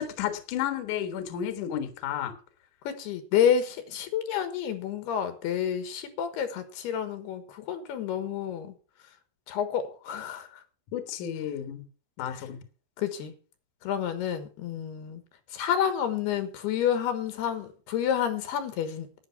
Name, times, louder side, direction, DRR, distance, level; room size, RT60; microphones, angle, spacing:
voice 1, 0.0-2.3 10.9-11.8 12.2-12.6, left 10 dB, 60° left, 8 dB, 2.5 m, -32 dB
voice 2, 2.8-8.7 9.5-10.6 12.3-12.4 13.0-13.3 13.8-15.2 15.5-19.1, left 9 dB, 80° left, 10 dB, 3.3 m, -29 dB
11.5 x 9.5 x 5.8 m, 0.39 s
omnidirectional pair, 4.7 m